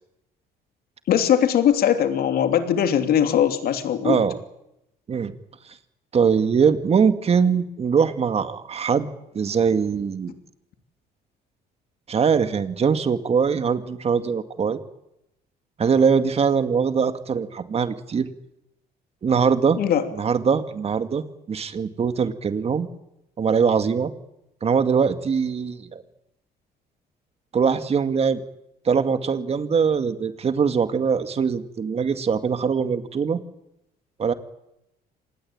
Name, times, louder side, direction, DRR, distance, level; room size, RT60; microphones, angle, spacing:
voice 1, 1.1-4.2 19.8-20.0, left 9 dB, 65° left, 8 dB, 3.0 m, -20 dB
voice 2, 4.0-4.4 5.1-5.3 6.1-9.1 9.3-10.3 12.1-14.8 15.8-18.3 19.2-19.8 20.1-21.2 21.5-22.9 23.4-24.1 24.6-26.0 27.5-28.4 28.9-33.4 34.2-34.3, right 6 dB, 35° right, 10 dB, 2.2 m, -22 dB
26.0 x 19.5 x 8.9 m, 0.84 s
cardioid pair, 110°, 17 cm